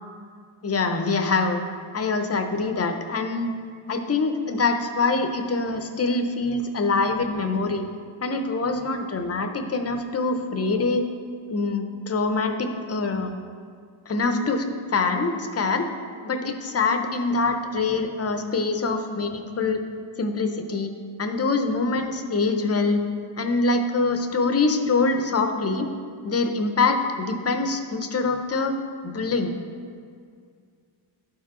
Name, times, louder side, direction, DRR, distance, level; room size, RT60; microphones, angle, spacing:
voice 1, 0.6-1.6 1.9-3.5 3.9-7.9 8.2-11.1 11.5-13.3 14.1-15.9 16.2-19.8 20.2-20.9 21.2-23.0 23.4-25.9 26.2-28.8 29.0-29.5, left 3 dB, 30° left, 6 dB, 0.6 m, -24 dB
11.5 x 4.6 x 3.7 m, 2.2 s
wide cardioid pair, 105°, 48 cm